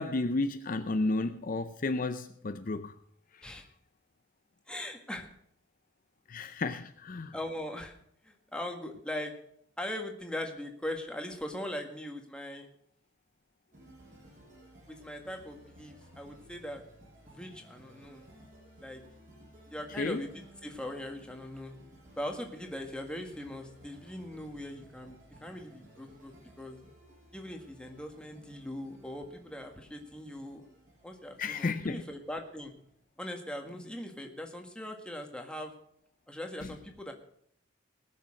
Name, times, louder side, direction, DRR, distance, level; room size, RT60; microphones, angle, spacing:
voice 1, 0.0-2.9 6.3-7.3 20.0-20.2 31.4-32.0, left 3 dB, 45° left, 0.6 m, -32 dB
voice 2, 4.7-5.3 7.3-7.9 8.2-9.3 9.8-12.7 14.9-16.8 17.2-18.2 18.8-19.0 19.7-20.3 20.6-21.7 22.2-26.8 27.3-30.7 31.0-32.7 33.2-35.7 36.3-37.1, left 1 dB, 5° left, 1.7 m, -40 dB
sound 1, 13.7-33.0, right 1 dB, 40° right, 6.8 m, -57 dB
20.0 x 6.6 x 6.4 m
head